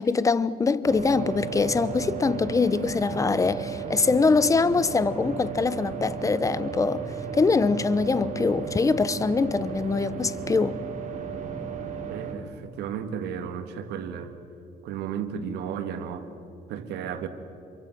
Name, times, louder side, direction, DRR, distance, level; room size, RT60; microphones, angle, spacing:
voice 1, 0.0-7.0 7.3-10.8, left 4 dB, 20° left, 0.8 m, -23 dB
sound 1, 0.9-12.3, right 6 dB, 45° right, 4.3 m, -34 dB
voice 2, 12.1-14.4 14.8-16.3 16.7-17.3, right 8 dB, 85° right, 2.0 m, -33 dB
27.5 x 24.0 x 6.1 m
cardioid pair, 110°, 17 cm